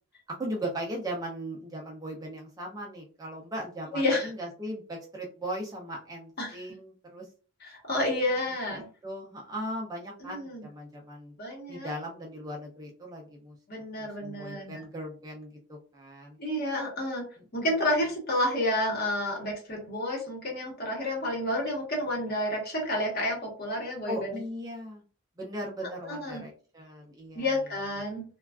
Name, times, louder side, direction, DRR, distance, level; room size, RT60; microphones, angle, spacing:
voice 1, 0.4-7.3 8.7-11.3 11.7-13.6 14.0-16.4 17.4-17.7 24.1-25.0 25.4-27.5, right 1 dB, 15° right, -2 dB, 0.4 m, -38 dB
voice 2, 3.9-4.3 6.4-6.6 7.6-8.8 10.2-10.6 11.4-11.9 13.7-14.8 16.4-17.2 17.5-24.4 26.0-26.4 27.3-28.2, left 1 dB, 45° left, 0 dB, 1.0 m, -30 dB
3.2 x 2.3 x 2.3 m, 0.39 s
head